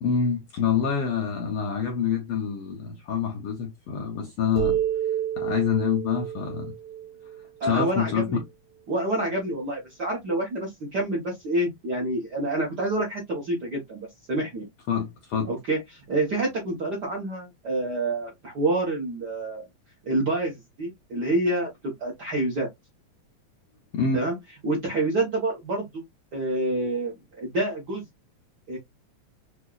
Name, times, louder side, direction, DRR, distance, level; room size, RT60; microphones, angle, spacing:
voice 1, 0.0-4.8 5.4-6.7 7.6-8.4 14.9-15.5 23.9-24.2, left 6 dB, 75° left, 1.3 m, -26 dB
sound 1, 4.6-8.1, right 10 dB, 80° right, 2.6 m, -29 dB
voice 2, 7.6-8.4 8.9-14.0 14.3-14.7 15.5-19.6 20.1-22.7 24.1-24.3 24.6-26.0 26.3-28.0 28.7-28.8, right 2 dB, 60° right, 1.0 m, -27 dB
5.3 x 2.3 x 2.4 m
omnidirectional pair, 3.4 m